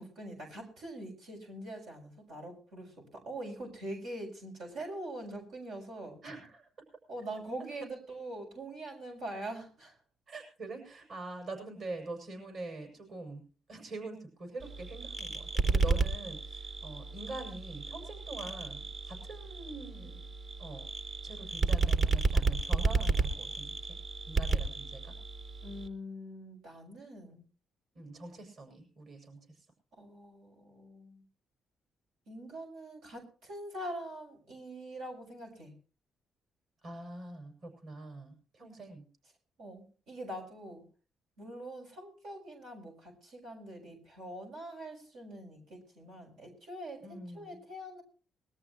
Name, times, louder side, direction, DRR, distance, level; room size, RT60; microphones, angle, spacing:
voice 1, 0.0-6.2 7.1-9.9 25.6-27.4 30.0-31.2 32.3-35.7 39.6-40.8 41.4-48.0, right 1 dB, 90° right, -1 dB, 6.5 m, -43 dB
voice 2, 6.2-6.7 10.3-13.4 13.7-20.3 20.6-20.9 21.2-24.0 24.3-25.1 27.9-29.5 36.8-39.1 47.0-47.6, right 2 dB, 60° right, 4 dB, 6.9 m, -44 dB
sound 1, 14.6-25.9, right 4 dB, 35° right, 3.6 m, -32 dB
22.0 x 13.5 x 3.1 m, 0.38 s
cardioid pair, 90°, 0 cm